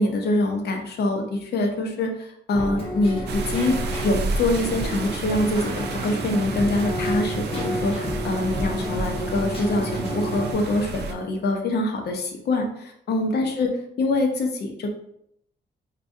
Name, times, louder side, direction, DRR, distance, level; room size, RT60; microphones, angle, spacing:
voice 1, 0.0-14.9, left 2 dB, 65° left, 3 dB, 0.7 m, -25 dB
Keyboard (musical), 2.5-10.5, equal, 30° left, 1.0 m, -30 dB
sound 1, 3.3-11.1, right 3 dB, 65° right, 0.4 m, -32 dB
4.6 x 2.3 x 2.6 m, 0.73 s
wide cardioid pair, 130°, 19 cm